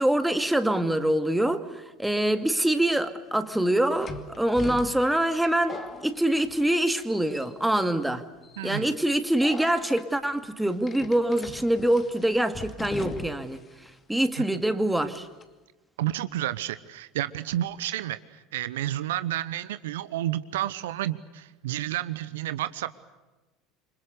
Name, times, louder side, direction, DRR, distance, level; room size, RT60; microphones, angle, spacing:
voice 1, 0.0-8.2 8.6-13.6 14.1-15.3, right 1 dB, 5° right, 9 dB, 2.2 m, -25 dB
sound 1, 2.7-2.8 4.0-7.0 7.3-7.8 8.4-8.7 9.4-10.0 10.8-13.6 13.8-13.9 15.1-15.4, left 4 dB, 30° left, 2.5 m, -40 dB
voice 2, 8.6-8.9 14.4-14.5 16.0-22.9, right 13 dB, 70° right, 14 dB, 0.9 m, -31 dB
28.0 x 26.0 x 6.8 m, 1.1 s
figure-of-eight pair, 70°, 0 cm